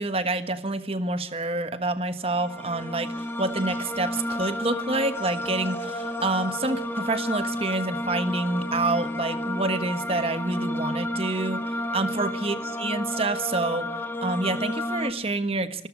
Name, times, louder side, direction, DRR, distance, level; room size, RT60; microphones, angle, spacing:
voice 1, 0.0-11.6 11.9-13.9 14.2-15.9, right 2 dB, 35° right, 10 dB, 1.4 m, -27 dB
sound 1, 2.2-15.1, left 1 dB, 10° left, 1.6 m, -31 dB
28.0 x 13.5 x 9.7 m, 0.73 s
head